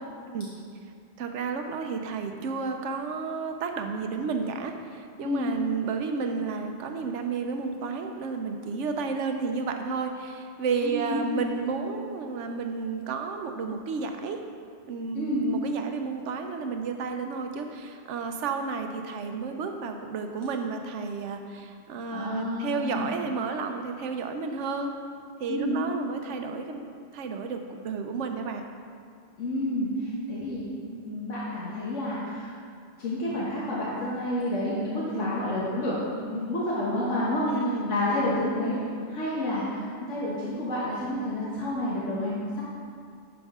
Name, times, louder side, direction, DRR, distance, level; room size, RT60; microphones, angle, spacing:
voice 1, 1.2-14.4 14.9-24.9 25.4-28.6 35.1-35.4 37.5-37.9, right 5 dB, 85° right, 5 dB, 1.0 m, -32 dB
voice 2, 10.8-11.2 15.1-15.4 22.1-23.1 25.5-25.8 29.4-30.7 31.0-32.5 33.0-37.5 37.9-38.8 39.1-42.6, left 1 dB, 90° left, -7 dB, 1.5 m, -29 dB
10.5 x 5.1 x 3.6 m, 2.2 s
omnidirectional pair, 1.2 m